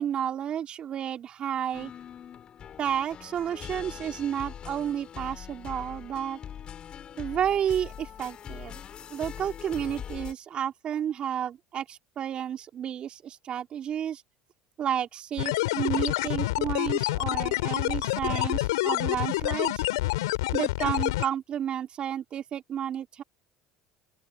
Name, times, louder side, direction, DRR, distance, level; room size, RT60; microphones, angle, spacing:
voice 1, 0.0-1.9 2.8-6.4 7.2-8.8 9.1-14.2 14.8-19.8 20.5-23.2, right 9 dB, 45° right, 3.9 m, -31 dB
sound 1, 1.7-10.3, left 9 dB, 45° left, 5.7 m, -42 dB
sound 2, 15.4-21.3, left 19 dB, 85° left, 4.7 m, -27 dB
open air
hypercardioid pair, 80°, 2 cm